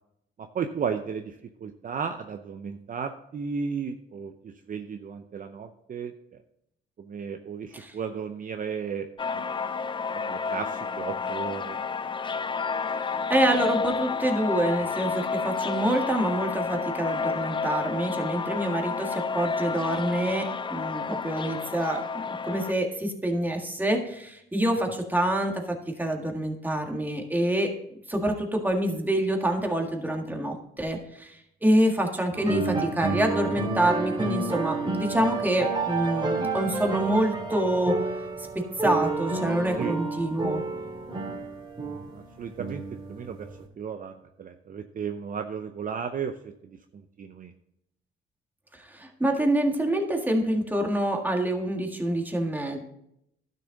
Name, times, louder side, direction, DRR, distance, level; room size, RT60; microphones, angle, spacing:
voice 1, 0.4-6.1 7.0-9.1 9.3-9.5 10.1-11.8 39.8-40.0 41.8-43.5 43.8-46.5 47.2-47.5, right 6 dB, 45° right, 6 dB, 0.7 m, -34 dB
sound 1, 9.2-22.7, left 5 dB, 25° left, 0.4 m, -30 dB
voice 2, 12.9-27.7 28.1-38.0 38.4-38.5 38.8-40.6 48.7-52.8, right 1 dB, 10° right, 2 dB, 1.8 m, -26 dB
sound 2, 32.3-43.6, right 3 dB, 25° right, 2.1 m, -30 dB
11.5 x 6.7 x 3.8 m, 0.76 s
cardioid pair, 90°, 20 cm